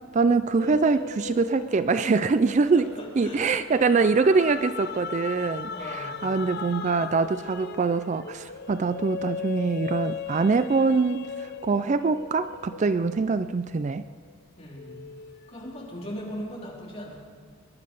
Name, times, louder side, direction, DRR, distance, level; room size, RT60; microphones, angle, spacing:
voice 1, 0.1-2.9 3.2-14.0, right 4 dB, 35° right, 12 dB, 0.3 m, -24 dB
sound 1, 0.6-14.3 14.8-16.4, left 6 dB, 50° left, 0.6 m, -38 dB
voice 2, 2.7-3.4 5.7-6.4 14.6-15.0 15.5-17.2, equal, 30° left, -4 dB, 3.6 m, -38 dB
21.0 x 10.5 x 5.4 m, 2.1 s
head